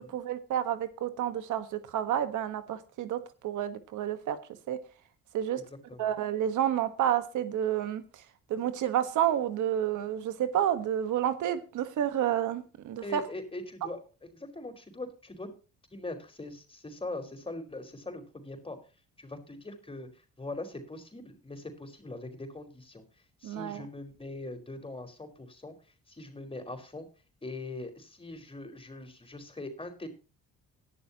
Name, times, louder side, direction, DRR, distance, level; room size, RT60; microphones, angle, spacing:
voice 1, 0.1-4.4 4.7-4.8 5.3-5.6 6.0-8.2 8.5-13.2 23.4-23.9, right 10 dB, 80° right, 10 dB, 1.5 m, -30 dB
voice 2, 13.0-15.5 15.9-18.8 19.2-23.0 23.4-25.7 26.1-27.1 27.4-30.1, left 2 dB, 20° left, 5 dB, 4.6 m, -41 dB
17.5 x 11.5 x 3.0 m, 0.34 s
cardioid pair, 90°, 30 cm